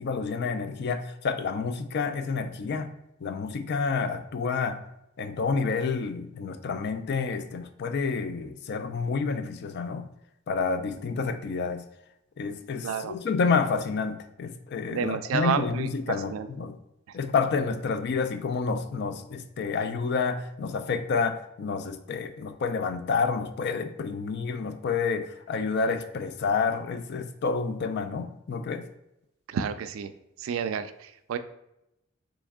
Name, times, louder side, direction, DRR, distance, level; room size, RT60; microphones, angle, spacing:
voice 1, 0.0-2.9 3.2-4.8 5.2-10.1 10.5-11.8 12.4-16.7 17.1-28.9, left 5 dB, 55° left, 9 dB, 0.4 m, -29 dB
voice 2, 12.8-13.2 14.9-16.5 29.5-30.1 30.4-31.4, right 7 dB, 75° right, 11 dB, 0.3 m, -30 dB
3.5 x 3.1 x 3.5 m, 0.85 s
head